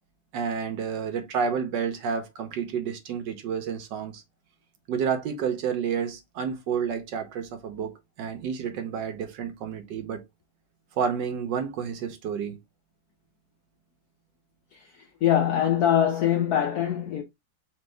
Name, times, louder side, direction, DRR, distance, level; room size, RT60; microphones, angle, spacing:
voice 1, 0.3-4.2 4.9-10.2 11.0-12.6, right 7 dB, 70° right, 1.3 m, -30 dB
voice 2, 15.2-17.2, left 10 dB, 75° left, 0.8 m, -23 dB
4.4 x 2.7 x 3.2 m
omnidirectional pair, 2.2 m